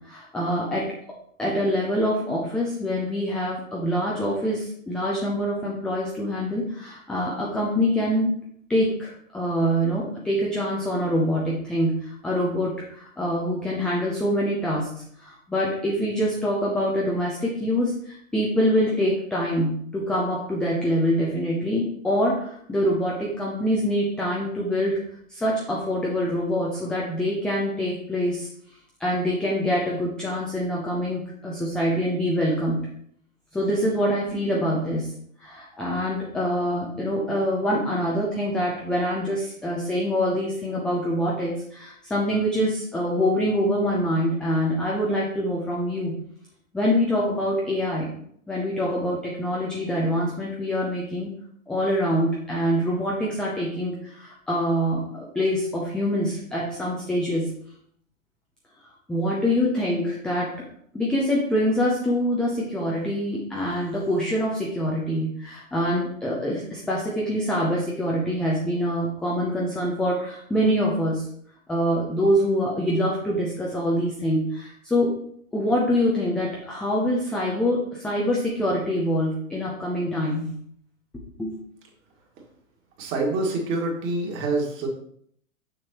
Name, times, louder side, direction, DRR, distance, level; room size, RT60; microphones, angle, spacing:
voice 1, 0.0-0.9 1.4-8.4 8.7-25.0 25.3-28.5 29.0-32.9 33.5-35.1 35.4-46.1 46.7-48.2 48.5-51.3 51.7-57.5 59.1-60.5 60.9-71.2 71.7-75.1 75.5-80.5 81.4-81.6, equal, ahead, -4 dB, 0.4 m, -25 dB
voice 2, 83.0-84.9, right 2 dB, 30° right, 1 dB, 1.8 m, -26 dB
6.6 x 6.5 x 2.9 m, 0.66 s
figure-of-eight pair, 115°, 41 cm